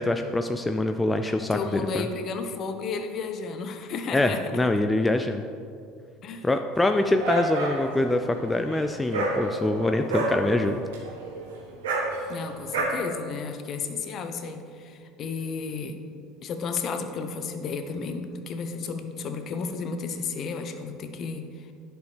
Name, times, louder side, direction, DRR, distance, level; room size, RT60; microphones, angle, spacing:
voice 1, 0.0-2.1 4.1-5.4 6.4-10.8 12.2-12.3, left 2 dB, 15° left, 6 dB, 0.4 m, -25 dB
voice 2, 1.5-4.4 6.2-6.5 12.3-16.0 16.4-21.7, left 5 dB, 45° left, 7 dB, 0.7 m, -33 dB
Dog, 6.8-12.8, right 2 dB, 75° right, 1.4 m, -31 dB
11.0 x 6.3 x 3.3 m, 2.3 s
figure-of-eight pair, 70°, 0 cm